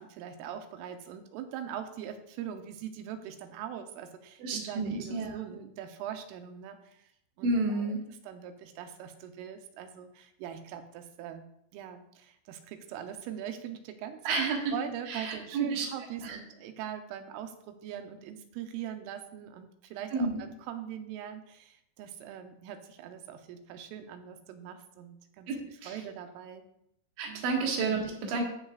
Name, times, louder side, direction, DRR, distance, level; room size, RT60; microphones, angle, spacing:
voice 1, 0.0-7.1 7.4-7.9 8.2-11.4 11.7-26.6 27.3-27.4, right 9 dB, 85° right, 7 dB, 3.4 m, -42 dB
voice 2, 4.4-5.4 7.4-8.0 14.3-14.6 15.1-15.9 16.2-16.4 20.1-20.4 25.5-26.0 27.2-28.4, right 3 dB, 70° right, 0 dB, 3.8 m, -31 dB
18.0 x 6.5 x 2.5 m, 0.76 s
omnidirectional pair, 5.7 m